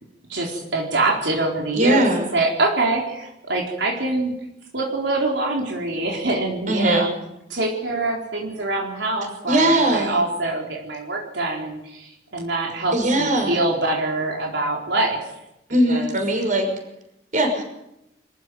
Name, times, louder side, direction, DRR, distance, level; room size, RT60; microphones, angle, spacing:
voice 1, 0.3-2.0 2.3-4.3 4.7-7.2 7.5-15.2 15.9-16.1, right 2 dB, 80° right, -1 dB, 4.2 m, -24 dB
voice 2, 1.7-2.3 6.7-7.1 9.5-10.2 12.9-13.6 15.7-16.7 17.3-17.6, right 1 dB, 45° right, 4 dB, 5.9 m, -20 dB
25.0 x 15.0 x 9.4 m, 0.87 s
head